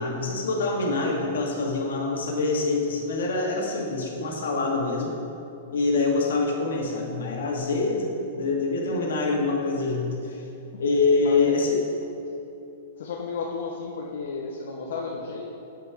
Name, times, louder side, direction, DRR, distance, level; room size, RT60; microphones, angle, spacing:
voice 1, 0.0-5.2 5.7-10.5 10.8-11.9, left 3 dB, 85° left, -1 dB, 1.8 m, -25 dB
voice 2, 11.2-11.6 13.0-15.6, left 4 dB, 65° left, -2 dB, 0.8 m, -33 dB
7.6 x 7.0 x 4.6 m, 2.8 s
supercardioid pair, 175°, 0 cm